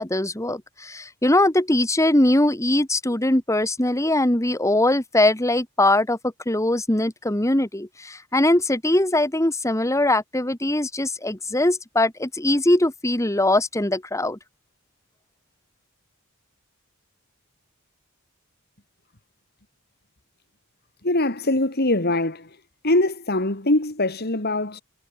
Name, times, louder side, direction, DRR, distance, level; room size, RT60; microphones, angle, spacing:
voice 1, 0.0-6.2 6.4-14.4, left 1 dB, 15° left, 1.7 m, -21 dB
voice 2, 21.0-22.5 22.8-24.8, left 2 dB, 45° left, 2.8 m, -22 dB
head